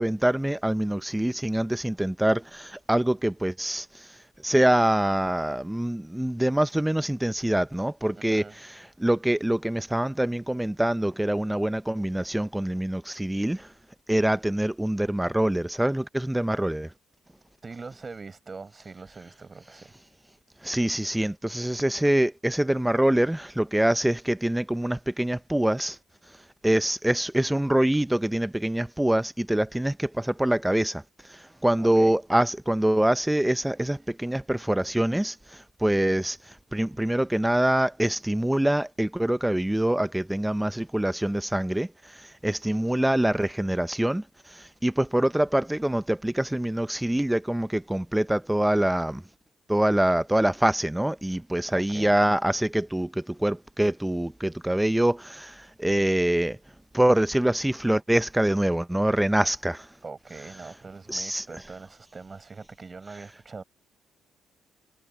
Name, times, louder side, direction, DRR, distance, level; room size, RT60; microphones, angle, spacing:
voice 1, 0.0-4.0 4.4-13.7 14.1-16.9 20.6-26.0 26.6-31.0 31.3-36.4 36.7-41.9 42.1-44.2 44.5-49.2 49.7-56.6 56.9-59.9 61.1-61.4, right 1 dB, 5° right, 0.6 m, -25 dB
voice 2, 8.2-8.6 17.6-19.9 31.8-32.2 34.0-34.1 51.3-51.4 51.7-52.2 60.0-63.6, right 4 dB, 30° right, 4.7 m, -42 dB
cardioid pair, 90°, 0 cm